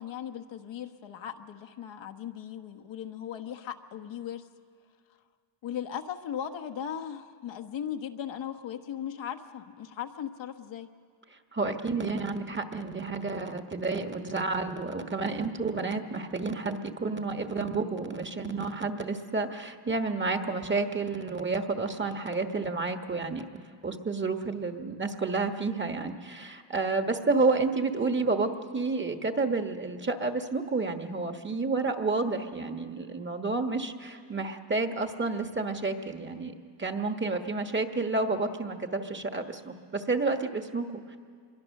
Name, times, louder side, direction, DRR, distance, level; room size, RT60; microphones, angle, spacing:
voice 1, 0.0-4.4 5.6-10.9, left 9 dB, 85° left, 6 dB, 1.3 m, -38 dB
voice 2, 11.5-23.5 23.8-41.2, right 3 dB, 25° right, 6 dB, 1.5 m, -30 dB
26.0 x 22.5 x 6.6 m, 2.1 s
cardioid pair, 115°, 44 cm